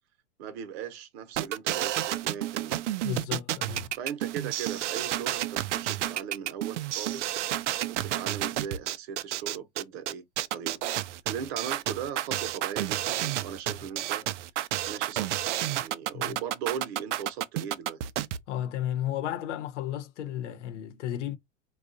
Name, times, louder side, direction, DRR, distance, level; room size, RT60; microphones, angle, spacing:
voice 1, 0.4-2.8 4.0-7.4 7.9-14.3 14.9-18.0, right 8 dB, 55° right, 0.9 m, -38 dB
sound 1, 1.4-18.4, right 13 dB, 75° right, 0.5 m, -30 dB
voice 2, 3.0-3.9 13.7-13.8 16.1-16.4 18.5-21.4, left 11 dB, 70° left, 0.9 m, -33 dB
3.6 x 2.4 x 2.5 m
hypercardioid pair, 125°, 36 cm